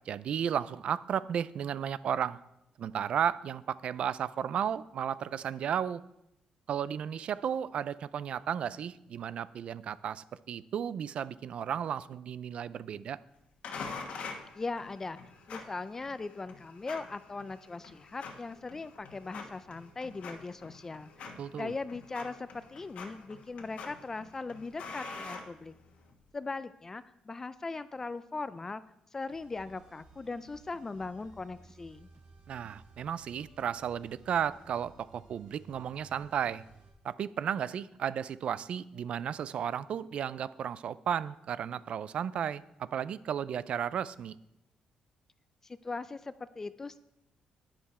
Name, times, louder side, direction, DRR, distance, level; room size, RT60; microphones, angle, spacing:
voice 1, 0.1-2.4 2.8-6.0 6.7-13.2 21.4-21.7 32.5-36.6 37.0-44.4, right 8 dB, 50° right, 17 dB, 0.4 m, -34 dB
sound 1, 13.6-26.1, left 4 dB, 60° left, 1.3 m, -46 dB
voice 2, 14.6-15.2 15.5-21.1 21.5-25.7 26.3-28.8 29.1-32.1 45.6-47.0, left 3 dB, 20° left, 14 dB, 0.3 m, -39 dB
sound 2, 29.3-36.9, right 3 dB, 85° right, 3.8 m, -57 dB
10.5 x 10.0 x 4.3 m, 0.85 s
cardioid pair, 160°, 2 cm